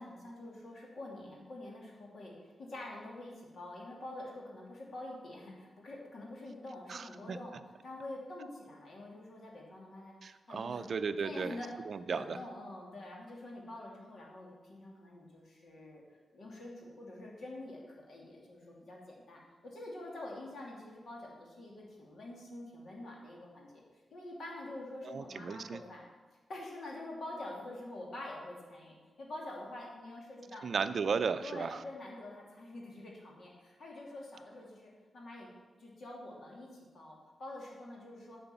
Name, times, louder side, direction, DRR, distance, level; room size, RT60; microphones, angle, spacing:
voice 1, 0.0-7.5 7.8-10.9 11.2-11.7 12.1-16.0 16.3-23.8 24.1-26.0 26.5-30.6 31.4-35.5 35.8-38.4, left 1 dB, 55° left, -2 dB, 2.6 m, -46 dB
voice 2, 6.9-7.4 10.2-11.6 11.9-12.4 25.0-25.8 30.6-31.8, right 5 dB, 50° right, 10 dB, 0.5 m, -35 dB
9.4 x 6.9 x 7.0 m, 1.3 s
wide cardioid pair, 145°, 0 cm